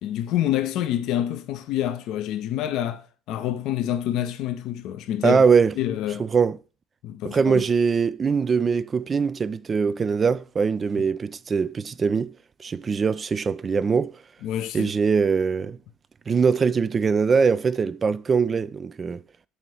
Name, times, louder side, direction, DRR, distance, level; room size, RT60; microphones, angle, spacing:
voice 1, 0.0-5.4 5.8-6.3 7.0-7.7 11.0-11.1 14.4-14.9, left 11 dB, 50° left, 0.5 m, -27 dB
voice 2, 5.2-5.7 6.2-6.6 7.2-12.3 12.6-14.2 14.7-15.8 16.3-19.2, right 5 dB, 30° right, 0.3 m, -22 dB
5.6 x 4.5 x 6.1 m
figure-of-eight pair, 60°, 0 cm